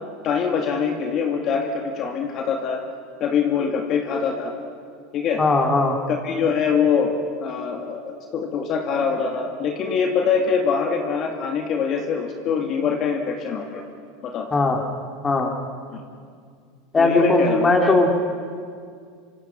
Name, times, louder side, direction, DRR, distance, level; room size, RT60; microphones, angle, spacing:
voice 1, 0.2-2.8 3.2-4.5 5.1-5.4 6.1-7.1 7.4-13.8 14.2-14.5 15.9-16.0 17.0-17.7, left 6 dB, 45° left, 3 dB, 2.6 m, -24 dB
voice 2, 5.4-6.0 14.5-14.8 15.2-15.5 16.9-18.1, left 3 dB, 20° left, 3 dB, 3.1 m, -18 dB
26.0 x 25.5 x 6.1 m, 2.2 s
hypercardioid pair, 90°, 0 cm